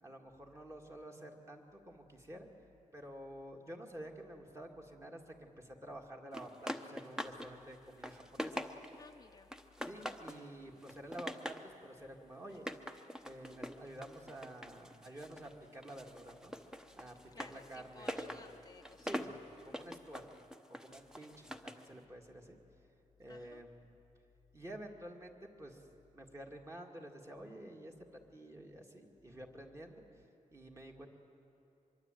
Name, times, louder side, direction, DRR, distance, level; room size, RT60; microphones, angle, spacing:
voice 1, 0.0-2.5 2.9-8.6 9.8-12.7 13.2-16.5 16.9-18.4 19.0-20.3 20.8-22.6 23.2-23.9 24.5-25.9 26.1-30.0 30.5-31.1, right 1 dB, 20° right, 2 dB, 2.1 m, -50 dB
sound 1, 6.3-7.5 7.8-9.1 9.5-10.4 10.8-11.7 12.5-15.5 15.8-21.9, equal, 5° right, 0.9 m, -44 dB
voice 2, 9.0-9.5 17.3-19.3 23.3-23.6, left 4 dB, 30° left, 5 dB, 0.7 m, -56 dB
25.0 x 22.5 x 9.1 m, 2.8 s
wide cardioid pair, 180°, 13 cm